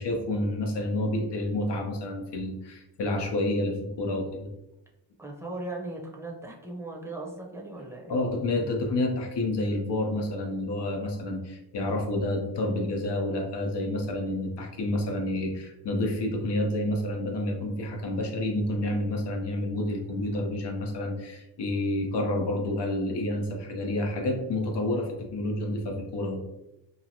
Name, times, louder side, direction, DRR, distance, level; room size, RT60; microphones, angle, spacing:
voice 1, 0.0-4.5 8.1-26.4, left 1 dB, 70° left, 1 dB, 0.7 m, -29 dB
voice 2, 5.2-8.1, right 2 dB, 5° right, -2 dB, 0.7 m, -38 dB
2.8 x 2.4 x 2.7 m, 0.92 s
cardioid pair, 85°, 43 cm